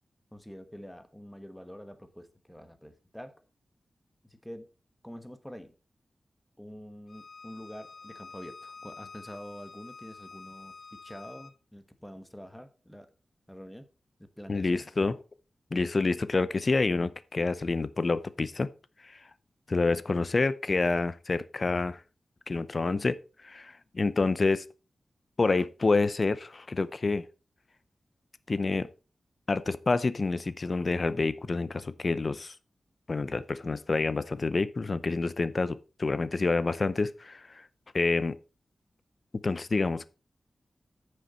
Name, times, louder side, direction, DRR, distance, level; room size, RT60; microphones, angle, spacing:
voice 1, 0.3-3.3 4.2-4.7 5.0-5.7 6.6-13.1 13.5-13.9 14.2-14.8, equal, 5° left, 1.1 m, -46 dB
Bowed string instrument, 7.1-11.5, left 4 dB, 70° left, 0.9 m, -48 dB
voice 2, 14.5-15.2 15.7-18.7 19.0-19.2 19.7-22.0 22.5-23.2 23.4-24.6 25.4-27.2 28.5-28.9 29.5-32.5 33.1-37.6 37.9-38.4 39.3-40.1, left 3 dB, 40° left, 0.6 m, -28 dB
9.6 x 6.5 x 4.3 m
wide cardioid pair, 115°, 0 cm